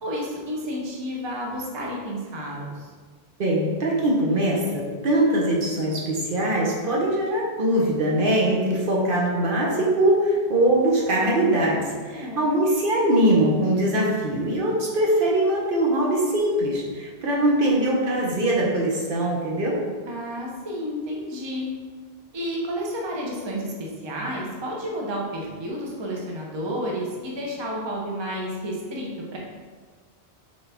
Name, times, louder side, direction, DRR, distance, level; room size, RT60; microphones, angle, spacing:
voice 1, 0.0-2.9 12.1-12.4 20.0-21.7 22.3-29.4, equal, 30° right, -2 dB, 0.6 m, -31 dB
voice 2, 3.4-19.8, right 1 dB, 60° right, -3 dB, 0.9 m, -22 dB
4.2 x 3.4 x 3.4 m, 1.5 s
omnidirectional pair, 1.1 m